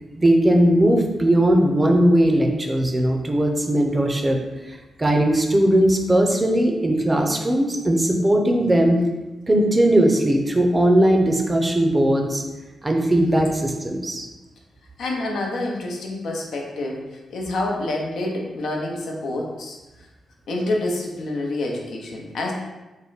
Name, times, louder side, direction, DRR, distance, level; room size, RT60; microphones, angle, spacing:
voice 1, 0.1-4.4 4.7-9.0 9.5-12.4 12.8-14.3, right 1 dB, 25° right, 2 dB, 0.5 m, -19 dB
voice 2, 15.0-17.0 17.3-19.8 20.5-22.5, left 2 dB, 80° left, -1 dB, 0.7 m, -27 dB
3.5 x 2.1 x 3.9 m, 1.1 s
cardioid pair, 75°, 0 cm